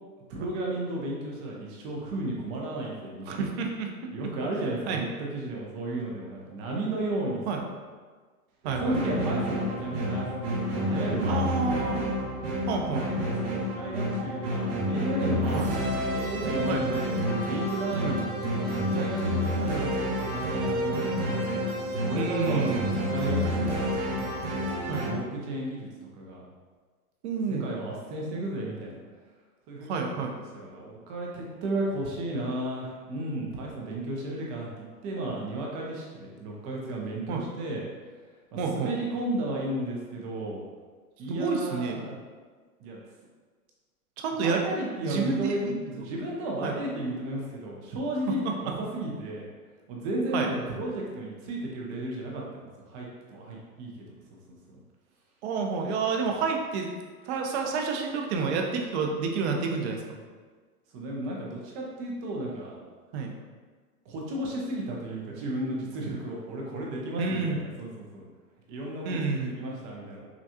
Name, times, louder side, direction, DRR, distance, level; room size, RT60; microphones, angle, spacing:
voice 1, 0.3-3.5 4.1-7.7 8.8-11.4 12.6-15.7 16.1-21.3 22.0-24.3 25.0-25.9 26.2-26.4 27.6-29.0 29.7-37.8 38.5-40.6 41.2-42.1 42.8-43.0 44.4-49.5 49.9-54.0 60.9-62.8 64.1-68.3 68.7-70.3, right 1 dB, 20° right, -2 dB, 0.4 m, -34 dB
voice 2, 3.3-4.1 4.9-5.0 7.5-7.6 8.6-9.0 11.3-12.1 12.7-13.1 15.5-15.7 16.7-17.0 18.0-18.2 22.1-22.9 24.9-25.1 27.2-27.7 29.9-30.4 37.3-37.4 38.6-38.9 41.3-42.1 44.2-44.6 45.0-45.8 46.6-46.7 48.3-48.7 50.3-50.5 55.4-56.9 57.3-60.0 63.1-63.3 67.2-67.6 69.0-69.6, right 5 dB, 45° right, 2 dB, 0.7 m, -29 dB
sound 1, 8.6-25.1, equal, 70° right, 1.2 m, -29 dB
6.1 x 2.2 x 2.8 m, 1.5 s
hypercardioid pair, 130°, 46 cm